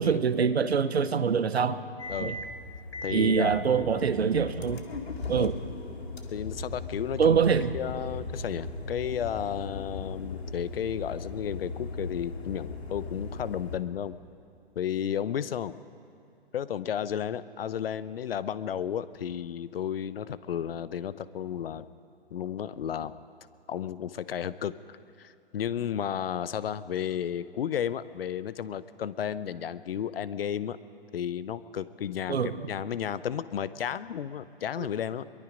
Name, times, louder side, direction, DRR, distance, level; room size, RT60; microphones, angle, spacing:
voice 1, 0.0-1.8 2.2-2.4 3.1-4.8 5.3-5.6 7.2-7.7 32.3-32.7, right 6 dB, 85° right, 12 dB, 1.1 m, -24 dB
sound 1, 2.0-13.8, left 3 dB, 85° left, 2.2 m, -38 dB
voice 2, 3.0-4.0 5.3-5.5 6.3-7.4 7.7-14.2 14.8-15.8 16.5-21.9 22.3-23.2 23.7-30.8 31.1-35.3, left 9 dB, 70° left, 16 dB, 0.8 m, -33 dB
22.5 x 22.5 x 5.2 m, 2.6 s
hypercardioid pair, 125°, 31 cm